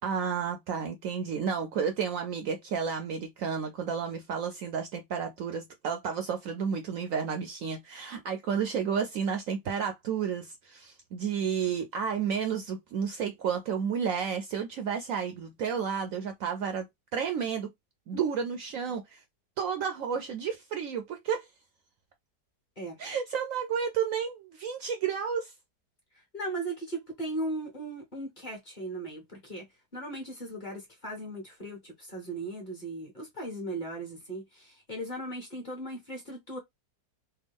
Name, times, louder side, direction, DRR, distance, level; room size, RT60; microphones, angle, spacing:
voice 1, 0.0-16.9 17.1-17.7 18.1-19.2 19.6-21.5 23.0-25.5, right 7 dB, 65° right, 0.9 m, -31 dB
voice 2, 26.1-29.7 29.9-36.6, right 1 dB, 30° left, 1.3 m, -37 dB
3.4 x 2.2 x 3.5 m
omnidirectional pair, 1.7 m